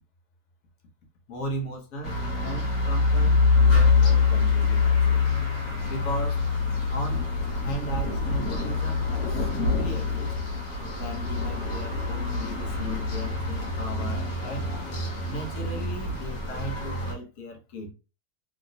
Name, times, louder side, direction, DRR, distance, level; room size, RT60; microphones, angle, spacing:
voice 1, 1.3-5.2 5.8-6.5 6.9-7.3 7.5-10.4 11.0-14.7 15.3-17.9, equal, 65° left, 1.3 m, -37 dB
sound 1, 2.0-17.1, left 4 dB, 90° left, 1.5 m, -25 dB
3.0 x 2.8 x 2.6 m
omnidirectional pair, 1.7 m